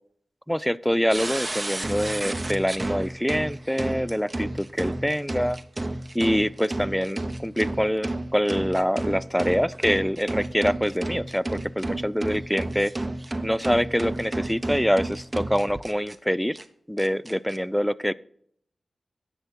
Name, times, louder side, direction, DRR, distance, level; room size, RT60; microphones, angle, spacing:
voice 1, 0.5-5.6 6.1-12.9 13.4-16.6 16.9-18.1, equal, ahead, 19 dB, 0.3 m, -25 dB
sound 1, 1.1-16.2 16.6-16.7 17.0-17.6, right 2 dB, 25° right, 0.8 m, -32 dB
10.0 x 7.1 x 4.4 m, 0.66 s
cardioid pair, 65°, 0 cm